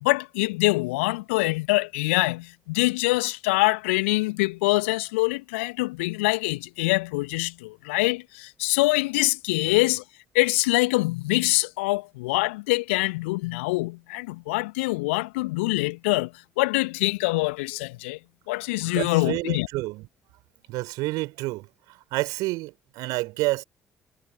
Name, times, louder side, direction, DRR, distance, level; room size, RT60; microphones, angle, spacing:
voice 1, 0.0-10.0 10.3-16.3 16.6-18.2 18.5-19.7, left 23 dB, 70° left, 2.0 m, -24 dB
voice 2, 18.9-20.1 20.7-23.6, right 21 dB, 65° right, 5.1 m, -29 dB
figure-of-eight pair, 45°, 7 cm